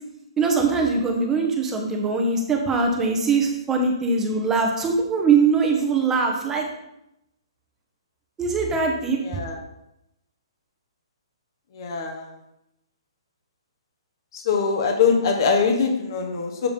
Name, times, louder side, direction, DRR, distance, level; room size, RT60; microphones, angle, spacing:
voice 1, 0.4-6.7 8.4-9.4, right 4 dB, 15° right, 1 dB, 1.0 m, -22 dB
voice 2, 9.2-9.6 11.7-12.3 14.3-16.7, left 5 dB, 50° left, 3 dB, 1.1 m, -22 dB
7.1 x 3.5 x 5.3 m, 0.85 s
hypercardioid pair, 140°, 3 cm